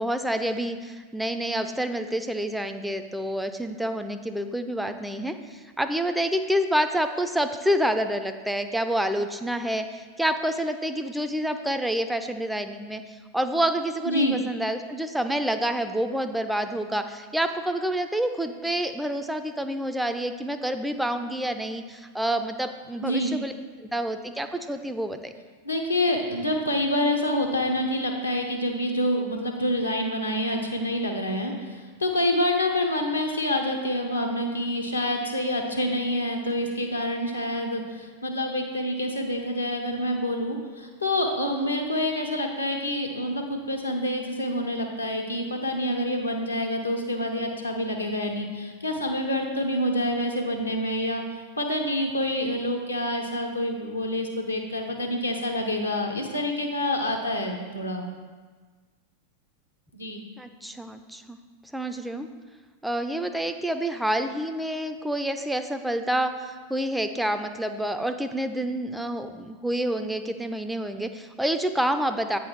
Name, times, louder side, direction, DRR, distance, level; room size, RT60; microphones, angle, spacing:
voice 1, 0.0-23.5 23.8-25.3 60.4-61.4 61.7-62.3 62.8-72.4, right 1 dB, 5° right, 7 dB, 0.4 m, -28 dB
voice 2, 14.1-14.4 23.0-23.3 25.6-51.2 51.6-58.0 59.9-60.2, left 1 dB, 85° left, 1 dB, 0.9 m, -27 dB
8.3 x 4.0 x 4.5 m, 1.5 s
figure-of-eight pair, 90°, 0 cm